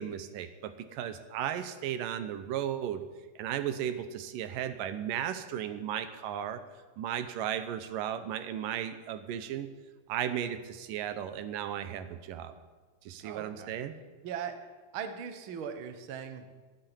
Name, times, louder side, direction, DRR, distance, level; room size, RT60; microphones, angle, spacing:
voice 1, 0.0-3.0 3.4-6.6 7.0-9.7 10.1-12.5 13.0-14.0, right 10 dB, 80° right, 11 dB, 2.5 m, -35 dB
voice 2, 13.2-13.7 14.2-14.5 14.9-16.5, right 7 dB, 55° right, 8 dB, 1.5 m, -39 dB
12.0 x 10.5 x 9.9 m, 1.3 s
omnidirectional pair, 3.8 m